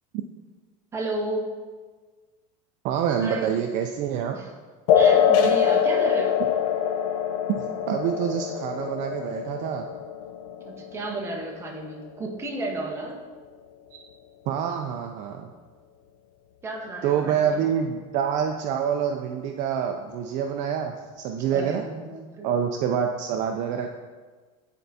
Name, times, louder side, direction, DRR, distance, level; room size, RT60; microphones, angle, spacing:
voice 1, 0.9-1.5 3.2-3.6 4.3-4.5 4.9-6.4 10.6-13.2 16.6-17.6 21.5-22.5, right 2 dB, 15° right, 0 dB, 0.8 m, -32 dB
voice 2, 2.8-4.4 7.5-9.9 14.5-15.5 17.0-21.8 22.4-23.9, right 8 dB, 45° right, 4 dB, 0.4 m, -26 dB
sound 1, 4.9-11.9, left 8 dB, 85° left, 0.5 m, -24 dB
8.9 x 4.4 x 2.7 m, 1.4 s
cardioid pair, 155°, 17 cm